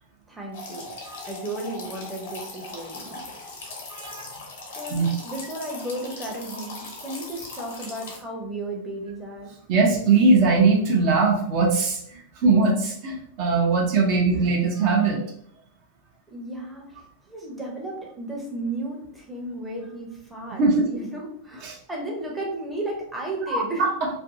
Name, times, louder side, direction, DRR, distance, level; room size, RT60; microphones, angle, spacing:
voice 1, 0.3-3.6 4.8-9.5 14.4-14.5 16.3-23.9, right 2 dB, 10° right, -2 dB, 0.7 m, -34 dB
sound 1, 0.5-8.2, left 3 dB, 55° left, 0.8 m, -39 dB
voice 2, 4.0-4.3 4.9-5.1 9.7-15.2 20.6-20.9 21.6-21.8 23.5-24.1, right 3 dB, 45° right, -1 dB, 0.6 m, -21 dB
2.6 x 2.5 x 2.6 m, 0.69 s
figure-of-eight pair, 90°, 0 cm